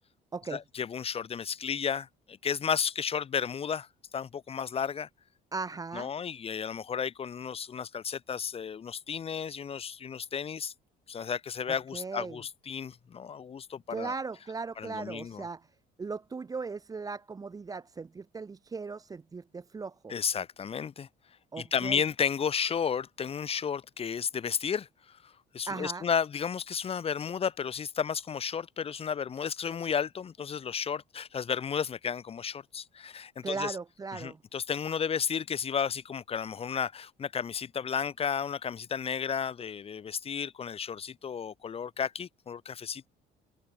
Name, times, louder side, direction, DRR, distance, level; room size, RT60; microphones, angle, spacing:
voice 1, 0.5-3.9 4.1-5.1 5.9-10.7 11.1-14.1 14.8-15.4 20.1-21.1 21.6-33.8 34.1-43.1, left 7 dB, 35° left, 1.0 m, -33 dB
voice 2, 5.5-6.1 11.9-12.4 13.9-15.7 16.0-20.1 21.5-22.0 25.7-26.1 33.4-34.4, right 4 dB, 20° right, 0.7 m, -38 dB
cardioid pair, 110°, 17 cm